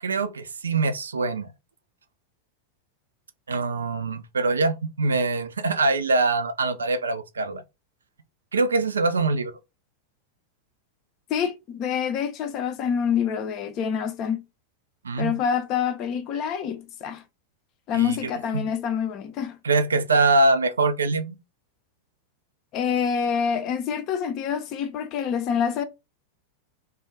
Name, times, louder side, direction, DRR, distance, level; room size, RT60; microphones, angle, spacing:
voice 1, 0.0-1.5 3.5-7.6 8.5-9.5 15.0-15.4 17.9-18.2 18.5-18.7 19.6-21.4, right 3 dB, 70° right, 0.3 m, -23 dB
voice 2, 11.3-14.4 15.2-17.2 17.9-19.6 22.7-25.8, left 7 dB, 40° left, 0.4 m, -26 dB
2.3 x 2.2 x 3.1 m
figure-of-eight pair, 90°, 0 cm